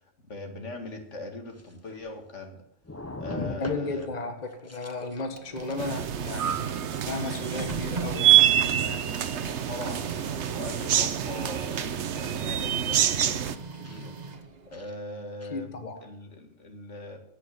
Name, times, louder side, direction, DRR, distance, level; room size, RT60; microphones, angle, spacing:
voice 1, 0.2-2.6 3.2-4.1 9.2-14.1 14.7-17.2, left 1 dB, 80° left, 4 dB, 2.5 m, -41 dB
sound 1, 0.9-1.0 1.5-2.5 2.8-4.1 4.5-5.2 5.6-5.9 6.2-7.2 7.8-8.1 9.2-9.4 10.0-10.3 10.7-11.0 11.6-11.8 12.3-12.5 13.2-13.4 13.8-14.1 14.7-15.0 15.4-15.5, left 2 dB, 15° left, 0.9 m, -42 dB
voice 2, 3.4-6.8 7.1-9.0 15.5-16.0, left 3 dB, 35° left, 6 dB, 1.5 m, -34 dB
Printer, 5.1-14.8, right 4 dB, 40° right, 1.0 m, -40 dB
sound 2, 5.8-13.6, right 11 dB, 70° right, 1.0 m, -26 dB
15.5 x 6.3 x 9.2 m, 0.72 s
omnidirectional pair, 1.2 m